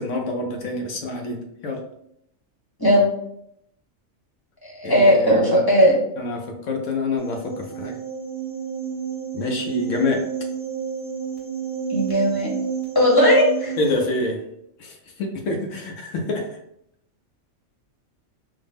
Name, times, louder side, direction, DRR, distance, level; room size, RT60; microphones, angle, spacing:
voice 1, 0.0-1.8 4.8-5.6 6.2-8.0 9.3-10.3 13.8-14.4 14.8-16.6, left 2 dB, 70° left, 3 dB, 0.9 m, -27 dB
voice 2, 4.6-5.9 11.9-12.5 12.9-13.7, equal, 20° left, -4 dB, 0.9 m, -17 dB
sound 1, 7.2-13.9, right 7 dB, 40° right, 1.0 m, -30 dB
3.9 x 2.0 x 3.4 m, 0.76 s
omnidirectional pair, 1.4 m